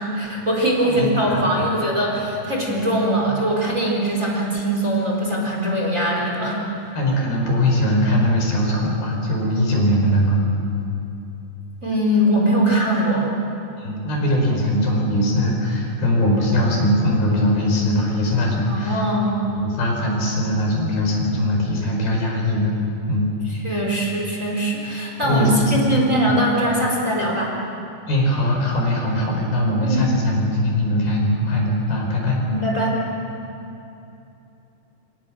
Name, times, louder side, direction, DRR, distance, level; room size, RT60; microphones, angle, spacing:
voice 1, 0.0-6.9 11.8-13.4 18.7-19.6 23.6-27.5 29.8-30.0 32.5-33.0, right 1 dB, 20° right, -2 dB, 4.3 m, -21 dB
voice 2, 0.8-1.4 7.0-10.4 13.8-19.0 19.6-22.7 23.1-23.3 25.2-25.6 26.0-26.4 28.1-32.4, left 1 dB, 75° left, 0 dB, 6.7 m, -21 dB
28.0 x 27.0 x 6.3 m, 2.8 s
omnidirectional pair, 4.4 m